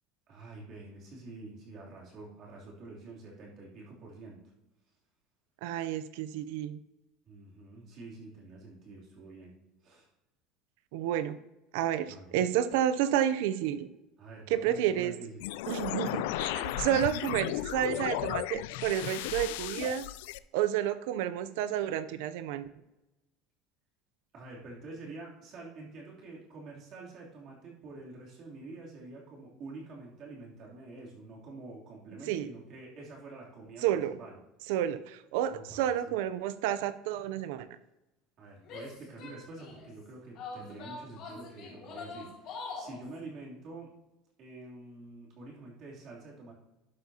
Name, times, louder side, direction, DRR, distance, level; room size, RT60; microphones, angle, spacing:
voice 1, 0.3-4.4 7.3-9.5 9.8-10.1 12.1-12.5 14.2-15.4 16.7-16.8 24.3-34.4 35.5-36.2 38.4-43.9 44.4-46.5, right 2 dB, 35° right, -3 dB, 3.0 m, -47 dB
voice 2, 5.6-6.8 10.9-11.4 11.7-13.9 14.5-15.1 15.7-20.0 20.5-22.7 32.3-32.5 33.8-34.2 34.7-37.7, right 11 dB, 75° right, 13 dB, 0.5 m, -30 dB
sound 1, 15.4-20.4, left 15 dB, 75° left, 0.3 m, -35 dB
Female speech woman speaking / Yell, 38.6-39.9 40.4-43.0, left 4 dB, 45° left, 2.7 m, -43 dB
12.0 x 7.8 x 2.8 m, 0.96 s
cardioid pair, 175°, 0 cm